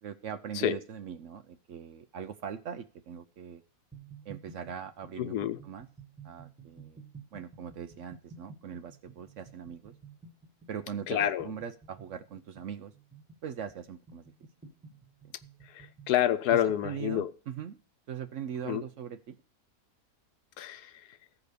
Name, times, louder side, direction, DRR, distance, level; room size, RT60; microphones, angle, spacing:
voice 1, 0.0-3.6 4.2-5.4 5.6-5.9 6.2-7.0 7.3-9.9 10.7-12.9 13.4-14.3 16.5-17.8 18.1-19.4, right 8 dB, 60° right, 0.8 m, -41 dB
sound 1, 3.9-16.2, right 5 dB, 5° right, 1.4 m, -52 dB
voice 2, 5.2-5.6 11.1-11.5 15.7-17.3 18.6-18.8 20.6-21.0, left 11 dB, 80° left, 1.2 m, -28 dB
14.5 x 4.9 x 6.7 m
omnidirectional pair, 1.7 m